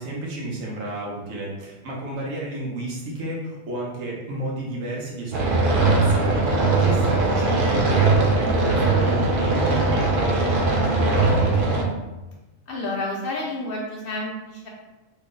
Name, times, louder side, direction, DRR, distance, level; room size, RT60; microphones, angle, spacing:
voice 1, 0.0-11.7, right 1 dB, 85° right, -3 dB, 1.2 m, -32 dB
sound 1, 5.3-11.8, right 3 dB, 60° right, 0.6 m, -20 dB
voice 2, 12.7-14.7, left 2 dB, 60° left, -2 dB, 0.6 m, -30 dB
3.0 x 2.0 x 3.7 m, 1.1 s
omnidirectional pair, 1.3 m